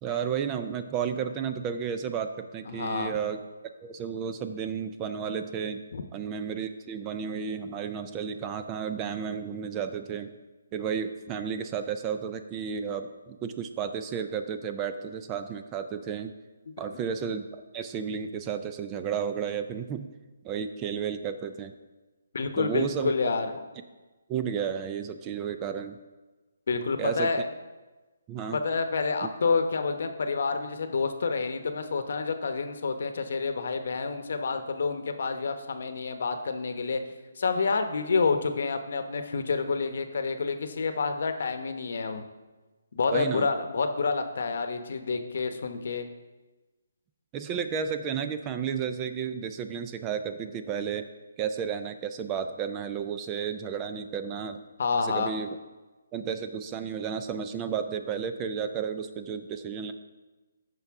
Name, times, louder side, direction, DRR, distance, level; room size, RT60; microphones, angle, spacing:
voice 1, 0.0-3.4 3.8-5.8 6.1-10.3 10.7-16.3 16.8-20.1 20.4-21.7 22.6-23.1 24.3-26.0 27.0-27.3 28.3-28.6 29.2-29.3 43.1-43.5 47.3-51.1 51.4-54.6 55.0-55.6 56.1-59.9, right 7 dB, 20° right, 9 dB, 0.4 m, -32 dB
voice 2, 2.7-3.2 5.9-6.0 16.7-17.0 22.3-23.6 26.7-27.4 28.5-37.0 37.4-42.3 42.9-46.1 54.8-55.3, left 4 dB, 60° left, 7 dB, 0.9 m, -28 dB
14.0 x 5.4 x 3.6 m, 1.2 s
hypercardioid pair, 155°, 0 cm